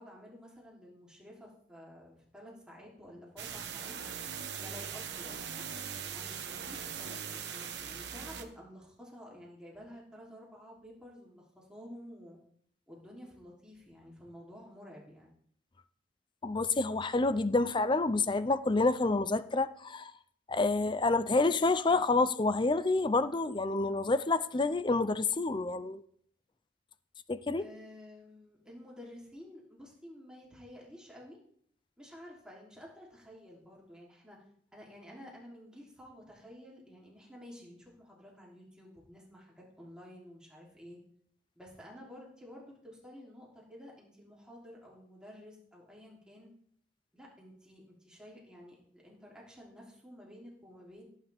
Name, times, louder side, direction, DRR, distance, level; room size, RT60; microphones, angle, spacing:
voice 1, 0.0-3.9 4.6-5.6 6.1-12.4 12.9-15.3 27.6-31.4 32.0-34.4 34.7-41.0 41.5-46.5 47.1-51.1, equal, 5° right, 3.2 m, -51 dB
sound 1, 3.4-8.4, right 7 dB, 70° right, 1.3 m, -40 dB
voice 2, 16.4-20.1 20.5-26.0 27.3-27.6, left 3 dB, 25° left, 0.5 m, -28 dB
17.5 x 9.2 x 3.5 m
head